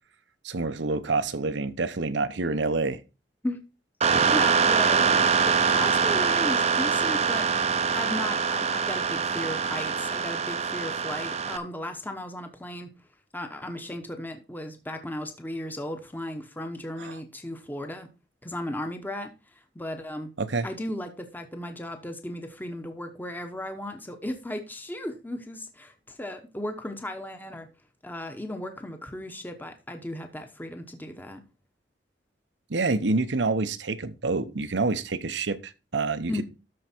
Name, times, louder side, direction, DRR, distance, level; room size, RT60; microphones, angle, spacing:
voice 1, 0.4-3.0 17.0-17.1 20.4-20.7 32.7-36.4, right 3 dB, 80° right, 0.9 m, -27 dB
sound 1, 4.0-11.6, right 5 dB, 40° right, 0.6 m, -24 dB
voice 2, 4.3-7.5 7.9-12.9 13.3-18.1 18.4-20.3 20.6-27.7 28.0-31.4 36.3-36.4, left 1 dB, 10° left, 1.0 m, -36 dB
13.0 x 4.7 x 4.4 m
head